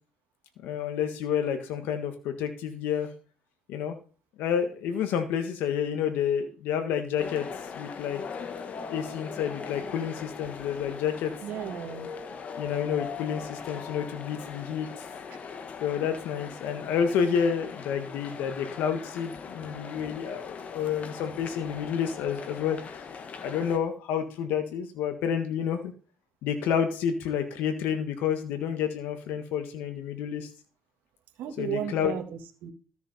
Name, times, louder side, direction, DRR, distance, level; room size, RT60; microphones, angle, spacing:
voice 1, 0.6-3.1 3.7-4.0 4.4-7.5 7.8-8.2 8.9-11.3 12.6-15.1 15.8-23.0 23.4-25.9 26.4-30.5 31.6-32.1, left 8 dB, 85° left, 7 dB, 1.6 m, -29 dB
sound 1, 7.2-23.8, left 6 dB, 50° left, 1.5 m, -40 dB
voice 2, 11.4-12.1 19.6-20.1 31.4-32.7, right 10 dB, 80° right, 4 dB, 1.8 m, -35 dB
13.5 x 7.0 x 4.2 m, 0.37 s
cardioid pair, 100°, 3 cm